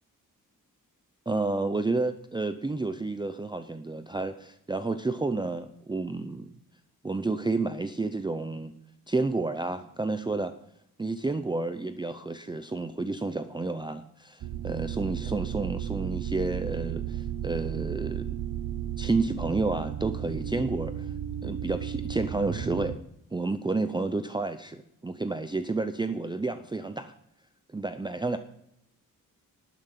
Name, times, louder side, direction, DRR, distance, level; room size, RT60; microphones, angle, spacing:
voice 1, 1.3-6.6 7.0-8.7 9.1-10.5 11.0-18.3 19.0-21.1 21.4-23.0 23.3-27.1 27.7-28.4, right 3 dB, 15° right, 10 dB, 0.5 m, -30 dB
sound 1, 14.4-23.0, right 10 dB, 75° right, 0.9 m, -34 dB
12.0 x 9.2 x 7.4 m, 0.78 s
wide cardioid pair, 175°, 35 cm